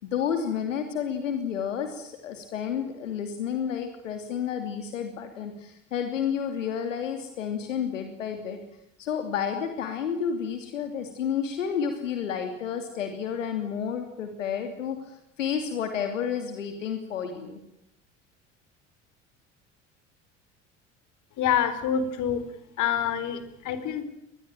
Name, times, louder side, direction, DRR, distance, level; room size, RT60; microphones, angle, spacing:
voice 1, 0.0-8.6 9.0-17.6, left 7 dB, 75° left, 6 dB, 3.0 m, -31 dB
voice 2, 21.4-22.4 22.8-24.0, left 8 dB, 50° left, 11 dB, 4.5 m, -26 dB
25.0 x 20.5 x 9.1 m, 0.78 s
figure-of-eight pair, 65°, 38 cm